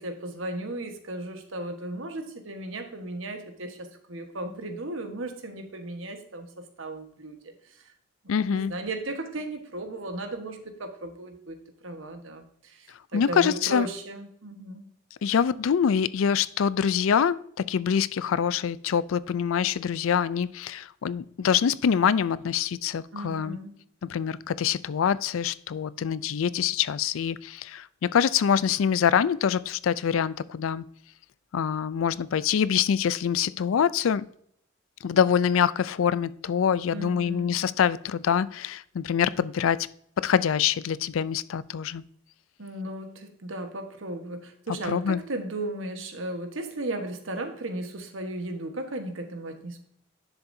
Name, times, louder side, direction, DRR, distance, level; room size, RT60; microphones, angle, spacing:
voice 1, 0.0-7.9 8.2-14.9 23.1-23.7 36.9-37.7 42.6-49.8, right 1 dB, 80° right, 6 dB, 1.3 m, -36 dB
voice 2, 8.3-8.7 13.1-13.9 15.2-17.4 17.7-23.6 24.0-30.8 31.5-34.3 35.0-39.9 40.2-42.0 44.9-45.2, left 7 dB, 90° left, 18 dB, 0.4 m, -25 dB
10.5 x 6.9 x 2.7 m, 0.68 s
head